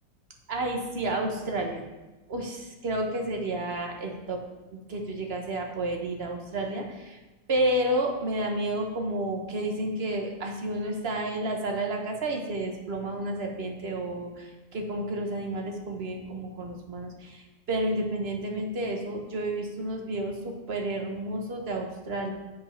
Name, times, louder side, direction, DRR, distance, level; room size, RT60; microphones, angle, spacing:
voice 1, 0.5-1.8 2.3-4.4 4.7-7.2 7.5-22.3, right 1 dB, 40° right, 2 dB, 1.1 m, -31 dB
7.8 x 5.3 x 5.7 m, 1.1 s
omnidirectional pair, 2.0 m